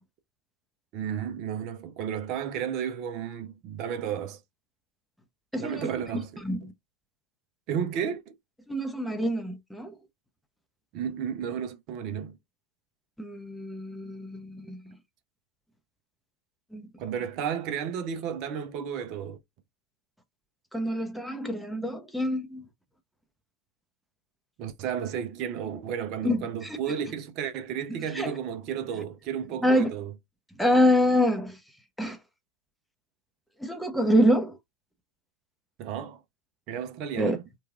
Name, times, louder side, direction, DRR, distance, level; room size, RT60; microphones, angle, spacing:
voice 1, 0.9-4.4 5.6-6.7 7.7-8.3 10.9-12.4 17.0-19.4 24.6-30.1 35.8-36.2 36.7-37.4, right 8 dB, 45° right, 0.5 m, -33 dB
voice 2, 5.5-5.9 6.4-6.6 8.7-9.9 13.2-14.8 16.7-16.8 20.7-22.6 26.2-26.8 28.1-28.3 29.6-29.9 30.6-31.6 32.0-32.2 33.6-34.6 37.2-37.4, equal, ahead, 0.6 m, -26 dB
3.0 x 2.3 x 2.3 m
figure-of-eight pair, 95°, 0 cm